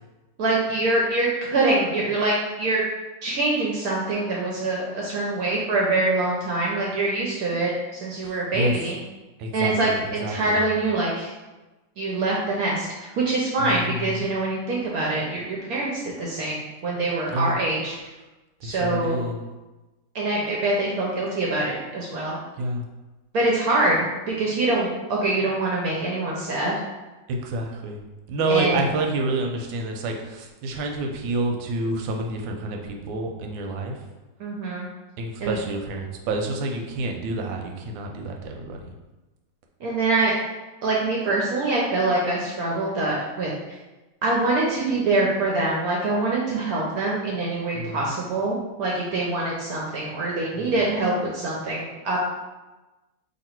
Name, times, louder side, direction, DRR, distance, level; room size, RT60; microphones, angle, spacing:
voice 1, 0.4-2.8 3.2-9.0 9.5-11.3 12.0-15.9 16.2-18.0 18.6-19.2 20.1-22.4 23.3-26.7 28.5-28.8 34.4-34.9 35.4-35.6 39.8-40.4 40.8-43.5 44.2-52.2, right 2 dB, 70° right, -3 dB, 0.9 m, -24 dB
voice 2, 8.2-8.8 9.4-10.6 13.6-14.3 17.3-17.6 18.6-19.5 22.6-22.8 27.3-28.0 28.3-34.0 35.2-38.9 47.7-48.1 50.5-50.7, right 2 dB, 90° right, 2 dB, 1.3 m, -28 dB
2.9 x 2.7 x 4.3 m, 1.1 s
omnidirectional pair, 2.0 m